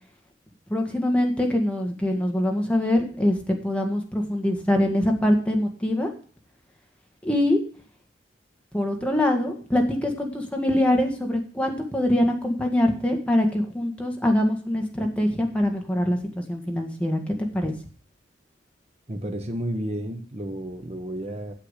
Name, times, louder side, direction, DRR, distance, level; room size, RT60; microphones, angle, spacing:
voice 1, 0.7-6.1 7.2-7.6 8.7-17.7, left 1 dB, 5° left, 2 dB, 1.9 m, -24 dB
voice 2, 19.1-21.5, right 1 dB, 35° right, 4 dB, 1.2 m, -31 dB
8.7 x 7.6 x 8.2 m, 0.42 s
head